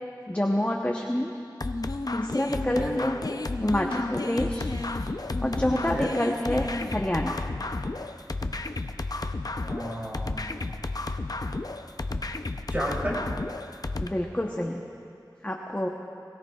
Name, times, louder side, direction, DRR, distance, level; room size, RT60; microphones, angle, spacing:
voice 1, 0.3-1.3 2.1-3.2 3.6-4.7 5.4-7.3 14.0-14.8 15.4-15.9, left 1 dB, 20° left, 0 dB, 0.9 m, -27 dB
sound 1, 1.6-14.1, left 2 dB, 55° left, 0.5 m, -32 dB
voice 2, 2.5-2.9 5.7-6.1 9.6-10.4 12.7-13.2, equal, 20° right, -3 dB, 3.0 m, -33 dB
22.0 x 16.5 x 2.4 m, 2.5 s
wide cardioid pair, 45°, 8 cm